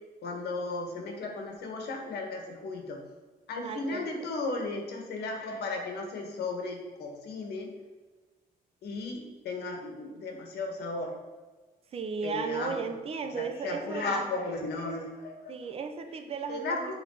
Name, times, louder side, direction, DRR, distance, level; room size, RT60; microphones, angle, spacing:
voice 1, 0.2-3.0 3.5-7.7 8.8-11.1 12.2-12.8 13.4-15.5 16.5-16.9, left 3 dB, 85° left, 2 dB, 1.7 m, -35 dB
voice 2, 3.6-4.1 11.9-14.2 15.5-16.9, right 5 dB, 40° right, 7 dB, 0.7 m, -35 dB
8.1 x 4.3 x 5.7 m, 1.3 s
cardioid pair, 180°, 16 cm